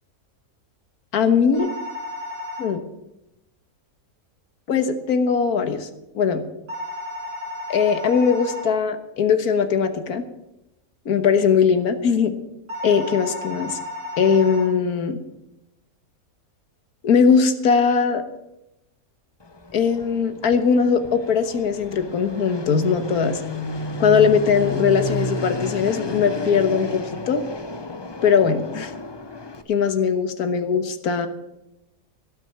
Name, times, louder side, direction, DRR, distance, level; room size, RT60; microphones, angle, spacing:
voice 1, 1.1-1.7 2.6-2.8 4.7-5.9 6.2-6.4 7.7-10.2 11.1-12.3 12.8-13.8 14.2-15.2 17.0-18.2 19.7-23.4 24.0-27.4 28.2-28.9 29.7-31.3, left 6 dB, 75° left, 9 dB, 1.7 m, -20 dB
sound 1, 1.5-2.7 6.7-8.7 12.7-14.7, left 1 dB, 85° right, 3.8 m, -33 dB
Fixed-wing aircraft airplane, 19.4-29.6, left 2 dB, 25° left, 0.5 m, -32 dB
17.0 x 6.2 x 9.2 m, 0.91 s
omnidirectional pair, 1.6 m